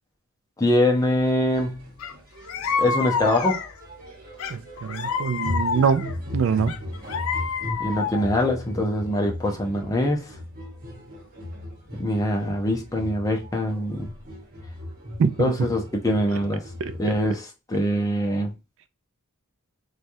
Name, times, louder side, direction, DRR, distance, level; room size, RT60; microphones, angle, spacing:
voice 1, 0.6-1.9 2.8-3.6 7.8-10.2 12.0-14.1 15.4-16.6 17.0-17.4 17.7-18.5, left 1 dB, 15° left, 0.6 m, -23 dB
sound 1, 0.9-17.0, left 1 dB, 40° right, 1.0 m, -37 dB
sound 2, 2.0-2.1 2.5-3.8 4.4-6.2 6.7-8.4, left 5 dB, 75° left, 0.3 m, -28 dB
voice 2, 4.5-6.8 15.2-15.5 16.8-16.9, right 6 dB, 60° right, 0.3 m, -24 dB
3.1 x 2.3 x 2.6 m
head